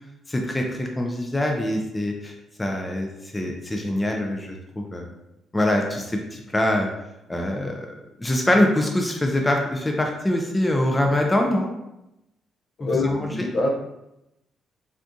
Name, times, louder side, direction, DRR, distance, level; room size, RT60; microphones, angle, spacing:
voice 1, 0.3-2.3 2.6-5.1 5.5-6.9 7.3-7.9 8.2-11.7 12.9-13.5, left 1 dB, 15° left, 2 dB, 0.4 m, -24 dB
voice 2, 12.8-13.7, left 2 dB, 60° left, 1 dB, 0.6 m, -25 dB
3.5 x 2.3 x 2.6 m, 0.89 s
cardioid pair, 90°, 0 cm